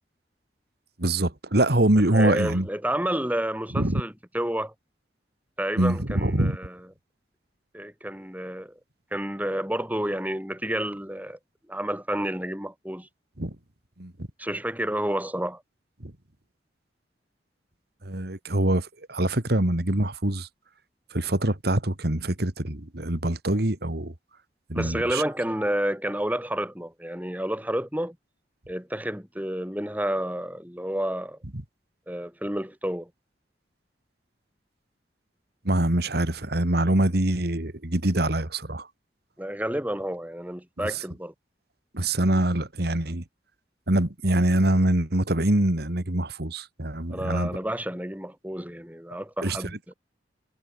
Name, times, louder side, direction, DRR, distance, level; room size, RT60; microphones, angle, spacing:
voice 1, 1.0-2.7 3.7-4.0 5.8-6.6 13.4-13.6 14.0-14.1 16.0-16.1 18.0-20.5 21.1-24.1 24.7-25.2 31.5-31.6 35.6-38.9 40.8-40.9 41.9-43.2 43.9-47.5 49.4-49.6, right 1 dB, 60° right, 2.4 m, -24 dB
voice 2, 2.1-4.7 5.6-6.8 7.7-8.7 9.1-11.4 11.7-13.1 14.4-15.6 24.7-28.2 28.7-31.4 32.1-33.1 39.4-41.3 47.1-49.9, right 1 dB, 10° right, 7.7 m, -30 dB
head